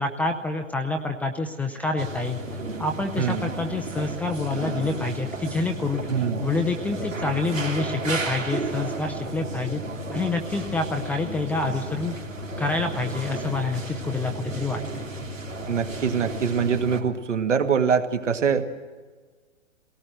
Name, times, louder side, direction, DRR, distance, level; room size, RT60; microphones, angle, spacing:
voice 1, 0.0-2.4 2.8-6.1 6.4-9.8 10.1-12.2 12.6-15.1, left 3 dB, 5° left, 4 dB, 0.5 m, -27 dB
sound 1, 2.0-17.0, right 1 dB, 90° right, 3.0 m, -33 dB
voice 2, 3.2-3.5 6.1-6.5 15.7-18.7, right 6 dB, 70° right, 6 dB, 2.1 m, -24 dB
21.5 x 18.0 x 7.8 m, 1.4 s
figure-of-eight pair, 120°, 38 cm